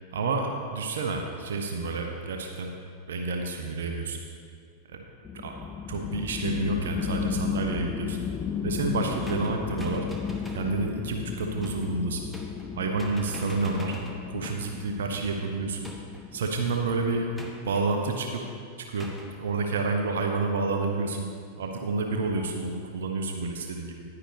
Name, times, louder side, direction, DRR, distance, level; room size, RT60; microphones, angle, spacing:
voice 1, 0.1-2.7 3.1-4.2 4.9-5.0 5.3-5.6 5.9-8.2 8.6-10.1 10.5-12.3 12.8-14.0 14.3-15.9 16.3-17.3 17.6-18.4 18.8-19.1 19.4-21.3 21.6-24.0, right 3 dB, 60° right, 3 dB, 0.8 m, -29 dB
sound 1, 5.2-17.3, left 7 dB, 20° left, 0.4 m, -34 dB
sound 2, 9.2-10.7 11.6-11.9 12.3-12.7 13.0-14.8 15.8-16.3 17.4-17.9 19.0-19.3, right 1 dB, ahead, 1.1 m, -43 dB
9.9 x 9.6 x 3.3 m, 2.3 s
figure-of-eight pair, 90°, 0 cm